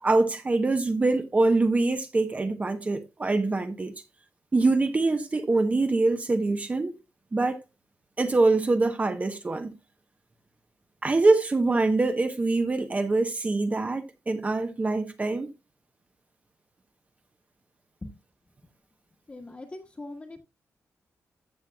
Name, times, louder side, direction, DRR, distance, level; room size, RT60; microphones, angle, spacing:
voice 1, 0.0-3.9 4.5-7.0 7.3-7.6 8.2-9.7 11.0-15.5, right 3 dB, 25° right, 1.0 m, -24 dB
voice 2, 19.3-20.4, left 2 dB, 25° left, 1.6 m, -41 dB
14.5 x 7.7 x 2.4 m
wide cardioid pair, 135°, 5 cm